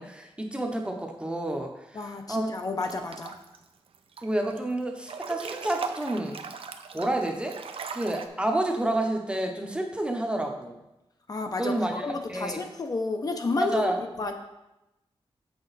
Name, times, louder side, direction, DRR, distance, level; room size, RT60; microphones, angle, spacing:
voice 1, 0.0-2.5 4.2-6.3 6.9-7.6 7.9-10.8 11.6-12.6 13.6-14.0, right 1 dB, 10° right, 3 dB, 0.7 m, -29 dB
voice 2, 1.9-3.3 11.3-13.9 14.2-14.3, left 3 dB, 40° left, 4 dB, 0.6 m, -31 dB
Breathing / Bathtub (filling or washing) / Splash splatter, 2.8-3.6 3.9-4.6 5.0-8.3, right 5 dB, 70° right, 0.5 m, -39 dB
7.4 x 5.9 x 4.0 m, 0.93 s
wide cardioid pair, 180°, 10 cm